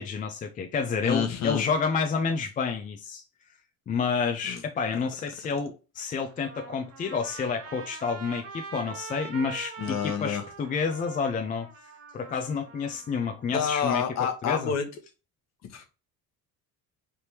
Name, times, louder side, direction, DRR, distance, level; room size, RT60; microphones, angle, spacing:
voice 1, 0.0-3.2 3.9-11.7 12.1-14.0 14.4-14.7, left 5 dB, 25° left, 0.3 m, -29 dB
voice 2, 1.0-1.6 4.5-4.6 9.8-10.4 13.5-14.9 15.7-15.9, left 7 dB, 50° left, 1.0 m, -28 dB
Trumpet, 6.2-13.7, right 5 dB, 40° right, 0.9 m, -43 dB
4.6 x 3.4 x 2.7 m
cardioid pair, 175°, 35 cm